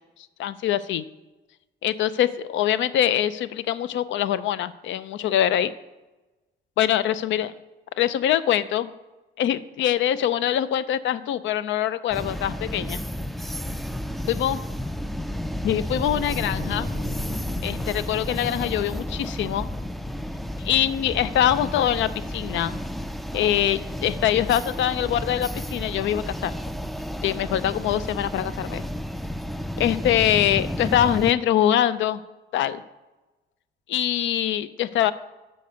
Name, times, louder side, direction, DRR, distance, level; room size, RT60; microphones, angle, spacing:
voice 1, 0.4-1.0 1.8-5.7 6.8-7.5 8.0-8.9 9.4-13.0 14.3-14.6 15.6-16.9 17.6-19.7 20.6-22.7 23.3-26.5 27.2-28.8 29.8-32.2 32.5-32.8 33.9-35.1, left 11 dB, 70° left, 16 dB, 0.4 m, -23 dB
sound 1, 12.1-31.3, left 1 dB, ahead, 0.3 m, -32 dB
sound 2, 16.0-21.1 21.3-21.6, left 2 dB, 25° left, 0.8 m, -38 dB
6.6 x 5.3 x 6.7 m, 1.1 s
cardioid pair, 90°, 20 cm